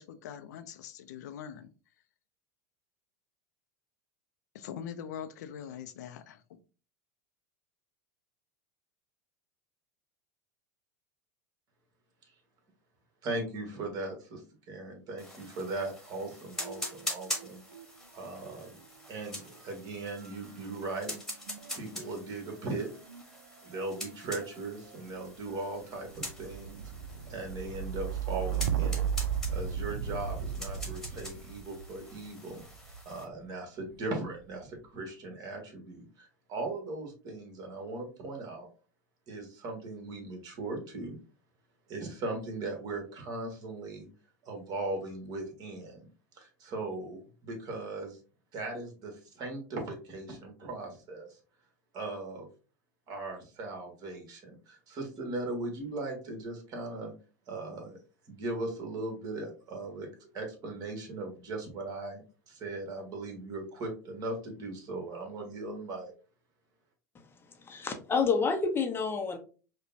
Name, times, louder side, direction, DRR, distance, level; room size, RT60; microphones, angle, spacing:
voice 1, 0.0-1.7 4.5-6.4, left 8 dB, 75° left, 0.5 m, -42 dB
voice 2, 13.2-14.4 14.7-17.6 18.1-18.7 19.1-21.1 21.7-22.9 23.6-26.9 27.3-29.1 29.5-32.6 33.0-38.7 39.3-41.2 41.9-44.1 44.4-46.1 46.3-48.2 48.5-51.4 51.9-52.5 53.1-57.1 57.5-58.0 58.3-60.1 60.3-66.1, right 2 dB, 45° right, 1.5 m, -38 dB
sound 1, 15.2-33.3, left 1 dB, 5° left, 1.4 m, -44 dB
sound 2, 16.6-17.9 18.2-33.2 34.0-34.6, right 8 dB, 85° right, 0.4 m, -37 dB
voice 3, 67.6-69.4, left 5 dB, 25° left, 0.6 m, -29 dB
4.9 x 2.2 x 2.6 m
hypercardioid pair, 100°, 9 cm